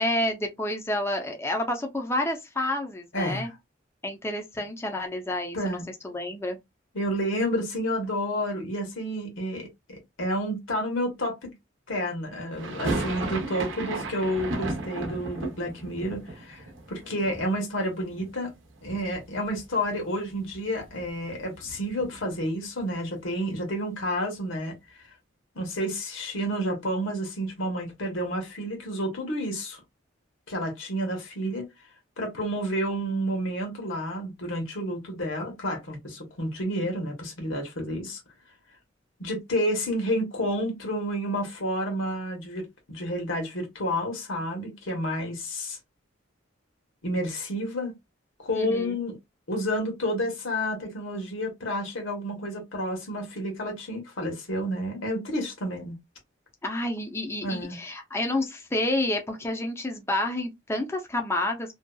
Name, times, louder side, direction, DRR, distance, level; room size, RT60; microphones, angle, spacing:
voice 1, 0.0-3.5 4.0-5.8 6.0-6.6 48.5-49.0 56.6-61.7, left 1 dB, 15° left, 0.5 m, -29 dB
voice 2, 3.1-3.5 5.5-5.9 6.9-11.5 11.9-18.5 18.8-24.8 25.5-29.8 30.5-31.7 32.2-38.2 39.2-45.8 47.0-47.9 48.4-49.1 49.5-56.0 57.4-57.8, equal, 75° left, 1.0 m, -30 dB
sound 1, 12.6-18.5 18.8-19.6 19.9-20.0 20.3-22.4, right 2 dB, 70° right, 0.7 m, -35 dB
2.7 x 2.3 x 2.2 m
head